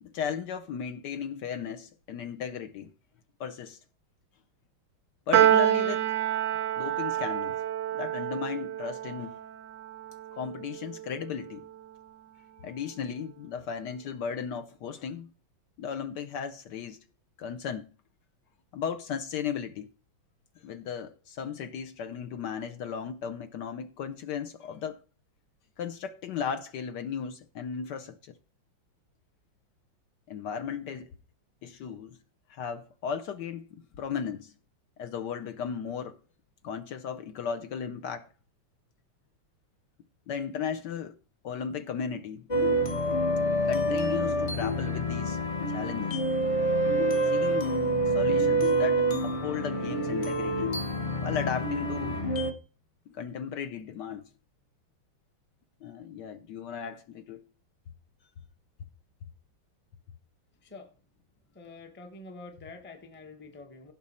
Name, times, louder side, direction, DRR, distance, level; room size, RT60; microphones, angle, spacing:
voice 1, 0.0-2.9 3.4-3.8 5.3-6.1 6.8-7.6 7.9-9.4 10.3-11.7 12.6-15.3 15.8-17.0 17.4-17.9 18.7-19.9 20.6-25.0 25.8-28.4 30.3-31.1 31.6-32.2 32.5-34.5 35.0-36.2 36.6-38.3 40.3-41.1 41.4-42.5 43.6-45.4 45.7-46.2 47.2-47.7 48.1-50.7 51.2-52.3 53.1-54.3 55.8-57.4, left 7 dB, 65° left, 1.2 m, -36 dB
Piano, 5.3-11.8, right 11 dB, 85° right, 0.7 m, -28 dB
sound 1, 42.5-52.5, right 1 dB, 45° left, 0.4 m, -27 dB
voice 2, 61.6-63.9, left 3 dB, 10° left, 0.7 m, -46 dB
15.5 x 6.1 x 4.2 m
omnidirectional pair, 2.2 m